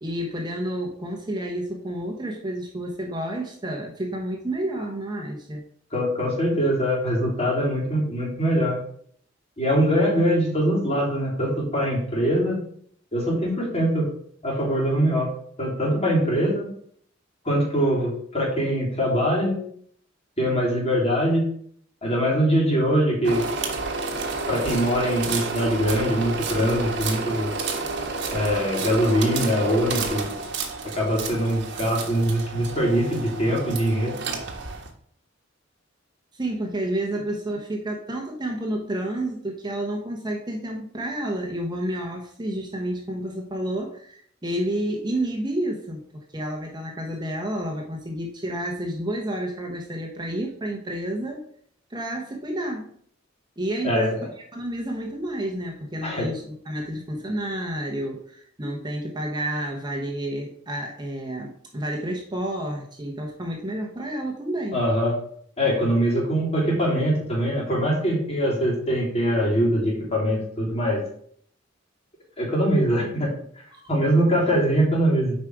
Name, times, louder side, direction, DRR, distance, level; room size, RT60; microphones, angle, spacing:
voice 1, 0.0-5.6 36.3-51.4 51.9-52.9 53.6-54.3 54.5-64.8 73.7-73.8, right 1 dB, 20° right, 1 dB, 1.0 m, -30 dB
voice 2, 5.9-8.8 9.6-12.6 13.1-14.1 14.4-15.3 15.6-16.7 17.5-19.6 20.4-21.5 22.0-23.4 24.5-27.5 28.3-30.3 30.9-34.1 53.8-54.2 56.0-56.3 64.7-65.1 65.6-71.0 72.4-73.3 73.9-75.3, equal, 35° left, -4 dB, 3.5 m, -22 dB
sound 1, 23.2-34.9, right 4 dB, 65° right, 1.4 m, -30 dB
8.1 x 5.1 x 4.9 m, 0.62 s
head